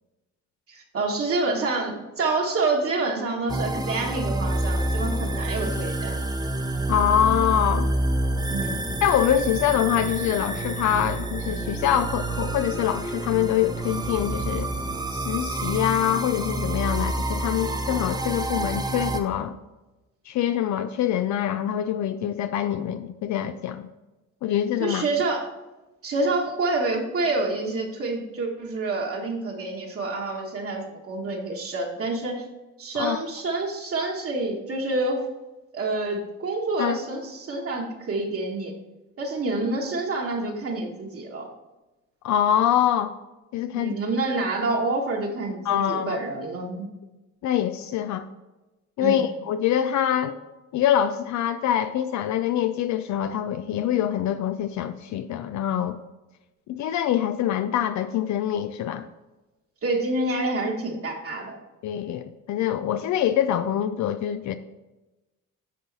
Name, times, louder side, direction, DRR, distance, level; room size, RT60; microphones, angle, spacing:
voice 1, 0.7-6.1 8.5-8.8 24.8-25.5 26.0-32.4 32.8-35.2 35.7-38.7 39.2-41.5 43.7-46.9 49.0-49.2 59.8-61.6, right 2 dB, 50° right, -1 dB, 1.3 m, -27 dB
sound 1, 3.5-19.2, right 2 dB, 15° right, 0.7 m, -28 dB
voice 2, 6.9-7.9 9.0-14.7 15.1-19.5 20.3-23.9 24.4-25.0 33.0-33.2 36.8-37.0 42.2-43.1 43.5-43.9 45.7-46.2 47.4-48.3 49.0-50.4 50.7-56.0 56.7-59.1 61.8-64.6, left 10 dB, 70° left, 10 dB, 0.4 m, -24 dB
10.0 x 4.0 x 4.0 m, 1.1 s
cardioid pair, 90°, 30 cm